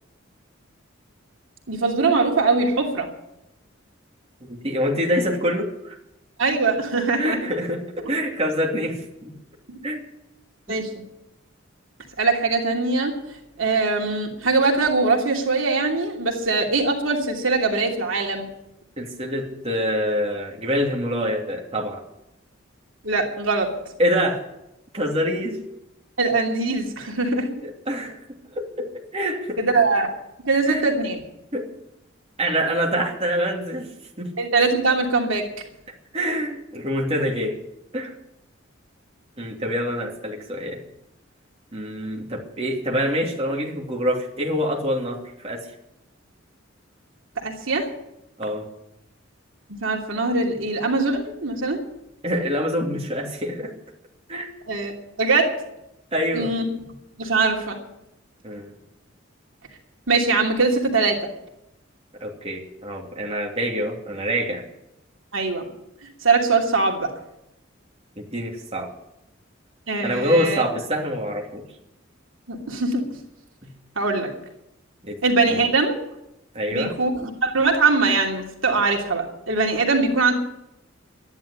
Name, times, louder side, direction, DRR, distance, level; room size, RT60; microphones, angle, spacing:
voice 1, 1.7-3.1 6.4-7.4 9.7-9.8 10.7-11.0 12.2-13.1 13.6-18.5 23.0-23.7 26.2-27.6 29.6-30.1 30.4-31.2 34.4-35.5 47.4-47.9 49.7-51.8 54.7-55.5 56.3-56.7 57.2-57.8 60.1-61.2 65.3-65.6 66.2-67.1 69.9-70.6 72.5-73.0 74.0-74.3 75.2-76.0 76.7-80.3, right 3 dB, 75° right, 1 dB, 2.8 m, -22 dB
voice 2, 4.4-5.9 6.9-9.3 9.8-10.0 10.7-10.8 19.0-22.0 24.0-24.4 24.9-25.6 27.6-28.2 28.5-29.6 30.6-30.9 31.5-31.7 32.4-33.9 34.2-34.3 36.1-37.5 37.9-38.1 39.4-40.8 41.7-45.7 48.4-48.7 52.2-53.7 54.3-54.5 56.1-56.5 57.2-57.3 58.4-58.7 62.2-64.6 68.2-68.9 70.0-71.6 75.1-75.2 75.5-75.6 76.5-76.9, equal, 30° right, -1 dB, 2.9 m, -26 dB
13.0 x 11.0 x 8.4 m, 0.84 s
head